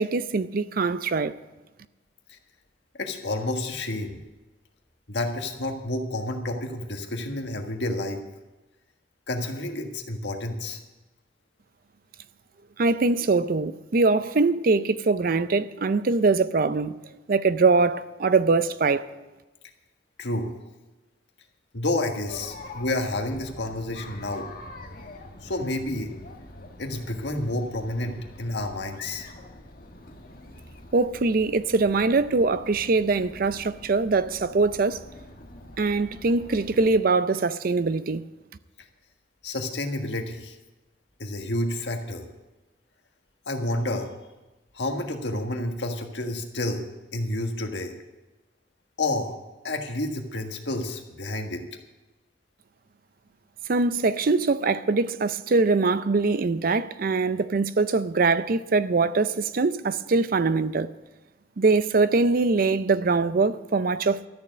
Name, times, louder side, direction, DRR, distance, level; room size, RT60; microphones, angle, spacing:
voice 1, 0.0-1.3 12.8-17.0 17.3-19.0 30.9-35.0 35.8-38.3 53.7-60.9 61.6-64.3, right 3 dB, 55° right, 0.5 m, -23 dB
voice 2, 3.0-4.2 5.1-8.2 9.3-10.8 20.2-20.5 21.7-24.5 25.4-26.2 26.8-29.3 39.4-40.5 41.2-42.3 43.5-44.1 44.7-46.9 47.1-47.9 49.0-49.3 49.6-51.6, left 1 dB, 75° left, 1.6 m, -30 dB
Chatter, 22.3-37.0, left 2 dB, 55° left, 1.4 m, -45 dB
13.0 x 7.0 x 9.3 m
head